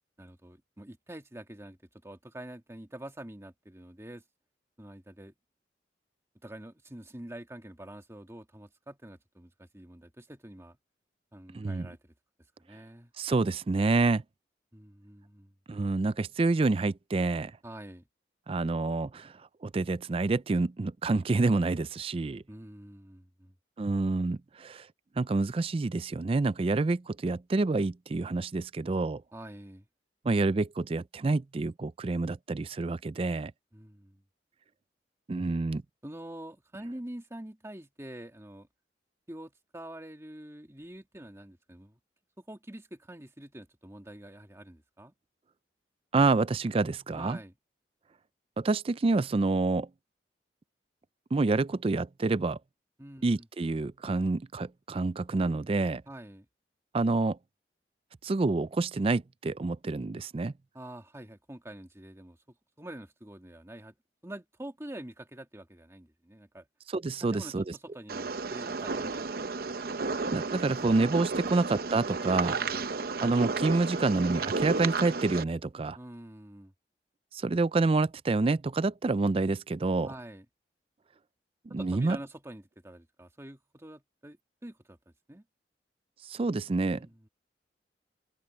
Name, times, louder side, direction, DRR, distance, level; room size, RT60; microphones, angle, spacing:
voice 1, 0.2-4.2 4.8-5.3 6.4-10.8 11.3-12.1 12.6-13.1 14.7-15.5 17.6-18.1 22.5-23.5 29.3-29.9 33.7-34.2 36.0-38.7 39.3-42.0 42.4-45.1 47.1-47.5 53.0-53.5 56.1-56.5 60.7-64.0 64.2-66.7 67.2-69.7 69.9-70.5 72.5-72.9 75.9-76.7 80.1-80.5 81.7-85.4 86.9-87.3, right 1 dB, 15° right, 1.8 m, -46 dB
voice 2, 11.5-11.9 13.2-14.2 15.7-17.5 18.5-22.4 23.8-24.9 25.2-29.2 30.2-33.5 35.3-35.8 46.1-47.4 48.6-49.9 51.3-52.6 53.2-56.0 56.9-57.4 58.2-60.5 66.9-67.6 70.3-72.5 73.2-76.0 77.3-80.1 81.7-82.2 86.2-87.1, right 3 dB, 30° right, 0.4 m, -28 dB
sound 1, 68.1-75.4, right 4 dB, 55° right, 0.8 m, -33 dB
head